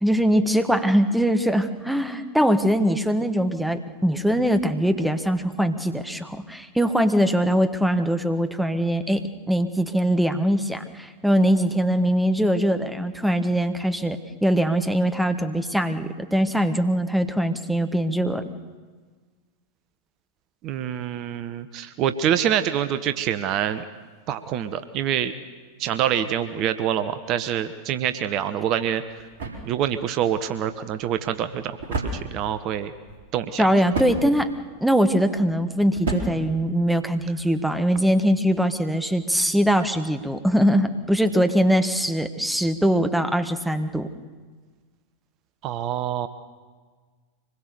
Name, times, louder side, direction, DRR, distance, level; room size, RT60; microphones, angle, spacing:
voice 1, 0.0-18.4 33.6-34.5 34.8-44.1, equal, ahead, 8 dB, 1.4 m, -22 dB
voice 2, 20.6-23.8 24.3-25.3 25.8-29.0 29.6-31.8 32.1-32.9 33.3-33.7 45.6-46.3, right 10 dB, 40° right, 11 dB, 1.0 m, -26 dB
sound 1, 28.5-37.4, right 3 dB, 60° right, 3.8 m, -35 dB
25.0 x 21.0 x 6.9 m, 1.5 s
figure-of-eight pair, 90°, 0 cm